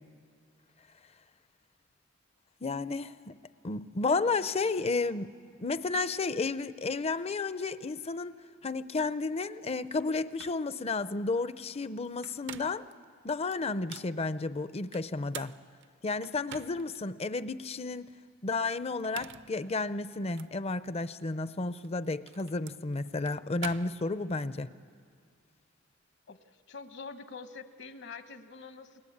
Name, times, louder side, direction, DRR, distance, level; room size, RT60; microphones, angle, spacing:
voice 1, 2.6-3.3 3.6-5.3 5.6-8.4 8.6-12.9 13.2-15.6 16.0-18.1 18.4-24.8, left 3 dB, 30° left, 15 dB, 0.6 m, -32 dB
sound 1, 10.0-10.1 10.4-10.6 12.1-12.9 13.5-14.1 14.9-17.0 17.5-17.6 18.9-19.6 20.3-20.5 21.7-24.5, right 9 dB, 60° right, 0.6 m, -46 dB
voice 2, 26.7-29.0, left 4 dB, 60° left, 9 dB, 1.2 m, -45 dB
29.5 x 21.5 x 8.7 m, 2.2 s
head